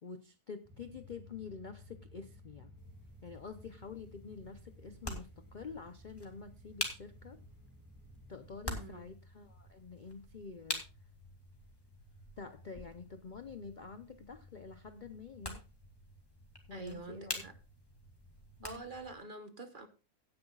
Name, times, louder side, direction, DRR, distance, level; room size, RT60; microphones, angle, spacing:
voice 1, 0.0-2.7 3.2-7.4 8.3-10.8 12.4-15.6 16.7-17.4 18.6-18.9, left 5 dB, 50° left, 9 dB, 0.6 m, -48 dB
sound 1, 0.6-8.6, equal, 10° right, 1.7 m, -57 dB
sound 2, 2.8-19.1, left 1 dB, 15° left, 2.1 m, -47 dB
voice 2, 8.7-9.1 16.7-17.5 18.6-19.9, right 3 dB, 40° right, 9 dB, 1.0 m, -46 dB
17.0 x 9.7 x 2.3 m, 0.30 s
omnidirectional pair, 1.6 m